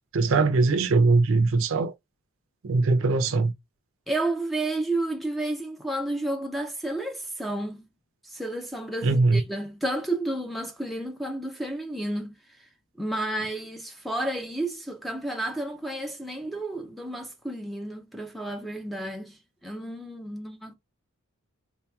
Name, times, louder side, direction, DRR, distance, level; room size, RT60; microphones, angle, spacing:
voice 1, 0.1-1.9 2.6-3.5 9.0-9.4, right 3 dB, 65° right, 0.5 m, -21 dB
voice 2, 4.1-7.8 8.2-12.4 13.0-20.7, right 1 dB, ahead, 0.4 m, -31 dB
3.8 x 2.8 x 2.3 m
head